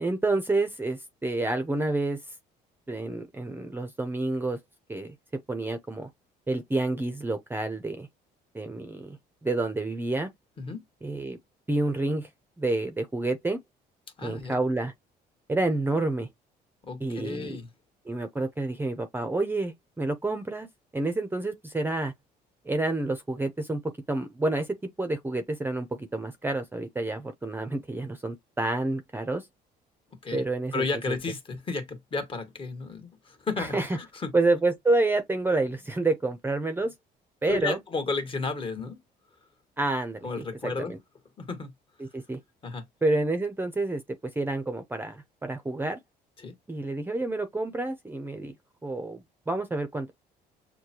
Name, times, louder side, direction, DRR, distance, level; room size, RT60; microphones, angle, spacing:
voice 1, 0.0-2.2 2.9-4.6 4.9-5.1 5.5-6.1 6.5-8.1 8.5-10.3 11.0-11.4 11.7-12.3 12.6-13.6 14.2-14.9 15.5-16.3 17.0-17.6 18.1-20.7 20.9-22.1 22.6-23.8 24.1-29.5 30.3-30.8 33.6-34.0 34.3-36.9 37.4-37.8 39.8-41.0 42.0-42.4 43.0-44.0 44.4-46.0 46.7-48.5 48.8-50.1, right 2 dB, 10° right, 0.7 m, -29 dB
voice 2, 14.2-14.6 16.8-17.7 30.2-30.4 30.7-34.3 37.5-39.0 40.2-41.0 41.4-41.7 42.6-42.8 46.4-46.6, left 4 dB, 30° left, 1.5 m, -33 dB
6.4 x 2.2 x 2.9 m
cardioid pair, 110°, 17 cm